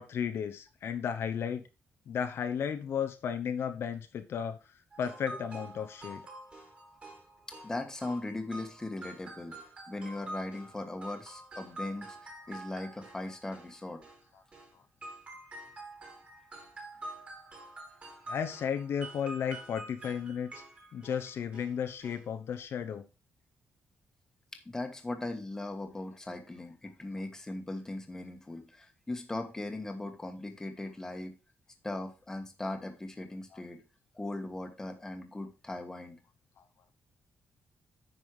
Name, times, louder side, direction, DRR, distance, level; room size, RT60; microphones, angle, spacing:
voice 1, 0.0-1.6 2.1-4.6 5.0-6.2 18.3-20.6 20.9-23.0, left 8 dB, 60° left, 7 dB, 0.9 m, -34 dB
sound 1, 4.9-14.7 15.0-21.7 22.0-22.2 22.5-22.6, right 2 dB, 30° right, 3.3 m, -47 dB
voice 2, 7.6-9.5 9.9-14.0 24.5-31.3 31.8-33.8 34.1-36.2, left 2 dB, 10° left, 5 dB, 1.4 m, -39 dB
9.6 x 5.5 x 4.8 m, 0.31 s
wide cardioid pair, 160°, 5 cm